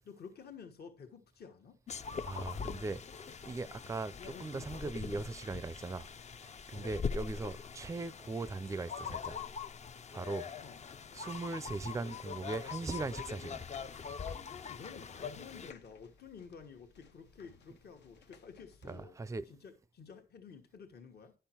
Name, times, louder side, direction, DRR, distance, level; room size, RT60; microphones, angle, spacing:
voice 1, 0.1-1.8 6.7-6.9 10.2-10.3 10.6-10.8 14.5-19.2 19.5-21.3, left 6 dB, 65° left, 1.2 m, -52 dB
sound 1, 1.9-15.7, left 6 dB, 40° left, 0.5 m, -43 dB
voice 2, 2.2-6.1 6.4-9.4 10.1-10.5 11.1-13.6 18.8-19.5, right 3 dB, 15° right, 0.4 m, -39 dB
sound 2, 11.7-19.1, left 7 dB, 80° left, 0.7 m, -62 dB
10.5 x 5.6 x 4.4 m
cardioid pair, 90°, 18 cm